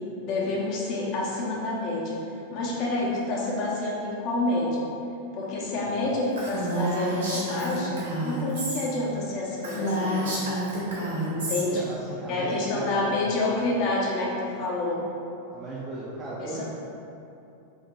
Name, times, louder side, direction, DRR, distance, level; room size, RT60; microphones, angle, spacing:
voice 1, 0.0-2.2 2.5-4.8 5.3-10.5 11.3-11.8 12.3-15.0 16.4-16.6, left 2 dB, 40° left, -4 dB, 0.8 m, -28 dB
voice 2, 5.7-6.1 11.7-13.7 15.5-16.6, right 2 dB, 20° right, -8 dB, 0.5 m, -37 dB
Female speech woman speaking, 6.4-8.8 9.2-9.3 9.6-11.6, right 1 dB, 65° right, 1.0 m, -29 dB
2.9 x 2.6 x 3.7 m, 2.8 s
figure-of-eight pair, 90°, 0 cm